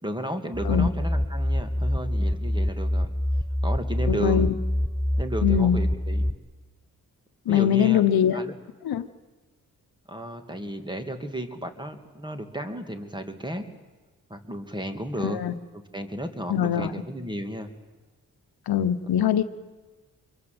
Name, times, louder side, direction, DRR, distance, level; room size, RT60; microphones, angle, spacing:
voice 1, 0.0-3.1 3.6-4.5 5.2-6.3 7.5-8.0 8.3-8.5 10.1-13.7 14.3-15.4 15.7-17.7, right 1 dB, 10° right, 7 dB, 2.7 m, -33 dB
sound 1, 0.5-6.3, left 1 dB, 10° left, 0.7 m, -26 dB
voice 2, 4.1-4.5 5.4-5.8 7.5-8.4 8.8-9.0 15.2-15.5 16.5-16.9 18.7-19.4, left 9 dB, 80° left, 11 dB, 1.1 m, -22 dB
25.5 x 23.0 x 7.9 m, 1.3 s
cardioid pair, 70°, 37 cm